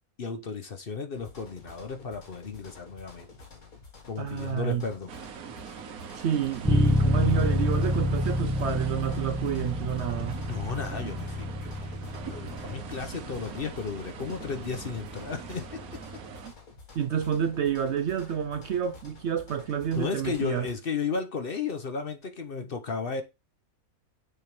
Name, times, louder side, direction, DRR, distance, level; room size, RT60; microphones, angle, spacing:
voice 1, 0.2-3.3 4.1-5.1 10.4-12.0 12.3-15.8 20.0-23.2, left 5 dB, 45° left, 0.9 m, -34 dB
sound 1, 1.1-20.7, left 4 dB, 75° left, 2.1 m, -50 dB
voice 2, 4.2-4.8 6.1-10.4 16.9-20.7, right 8 dB, 65° right, 0.7 m, -29 dB
sound 2, 5.1-16.5, right 7 dB, 85° right, 1.4 m, -42 dB
Bass guitar, 6.6-16.4, left 1 dB, 5° right, 0.3 m, -29 dB
6.7 x 3.4 x 6.0 m
omnidirectional pair, 1.5 m